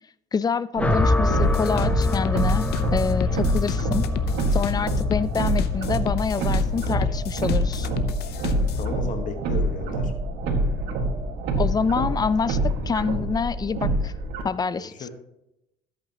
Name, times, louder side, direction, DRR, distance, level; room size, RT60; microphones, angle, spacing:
voice 1, 0.3-4.0 4.5-7.9 11.6-12.6 12.9-14.1 14.4-15.1, left 5 dB, 25° left, 17 dB, 0.4 m, -26 dB
sound 1, 0.7-14.4, right 1 dB, 90° right, 1.8 m, -26 dB
sound 2, 0.8-9.1, left 2 dB, 10° left, 0.8 m, -27 dB
sound 3, 1.3-8.9, left 8 dB, 75° left, 0.7 m, -30 dB
voice 2, 8.5-10.1 14.7-15.1, left 4 dB, 50° left, 5 dB, 1.4 m, -35 dB
13.0 x 8.5 x 2.9 m, 0.87 s
cardioid pair, 110°, 17 cm